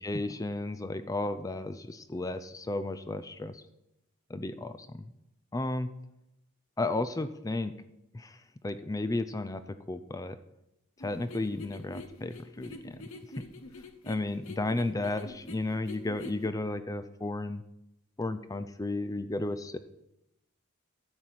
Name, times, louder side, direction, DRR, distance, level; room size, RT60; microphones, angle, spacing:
voice 1, 0.0-3.6 4.3-5.0 5.5-5.9 6.8-7.7 8.1-8.4 8.6-9.6 9.9-10.4 11.0-13.0 14.0-17.6 18.2-19.8, left 2 dB, 15° left, 11 dB, 0.5 m, -33 dB
sound 1, 11.0-16.5, left 2 dB, 70° left, 1.1 m, -46 dB
13.0 x 4.5 x 8.5 m, 0.86 s
head